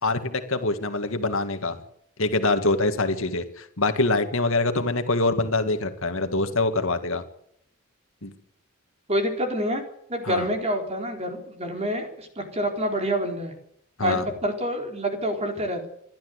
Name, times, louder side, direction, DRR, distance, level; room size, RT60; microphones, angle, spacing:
voice 1, 0.0-1.8 2.2-7.2 8.2-8.3 10.2-10.4 14.0-14.2, left 2 dB, 65° left, 8 dB, 2.0 m, -24 dB
voice 2, 9.1-9.8 10.1-13.5 14.0-15.9, equal, 30° right, 4 dB, 4.2 m, -27 dB
28.0 x 12.5 x 8.1 m, 0.72 s
head